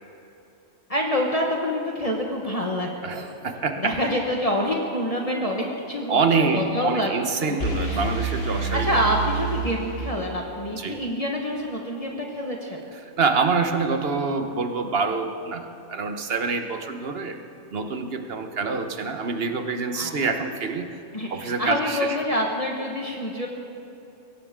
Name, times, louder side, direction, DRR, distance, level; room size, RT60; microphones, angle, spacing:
voice 1, 0.9-3.3 3.8-7.1 7.4-8.0 8.5-12.8 19.9-20.3 21.1-23.5, equal, 30° left, -1 dB, 1.5 m, -27 dB
voice 2, 3.0-3.9 6.1-9.0 10.7-11.0 13.0-17.4 17.7-21.0 21.3-22.2, right 4 dB, 60° right, 6 dB, 1.3 m, -26 dB
sound 1, 7.6-10.5, right 4 dB, 60° left, 1.8 m, -28 dB
22.5 x 17.0 x 3.7 m, 2.8 s
omnidirectional pair, 1.2 m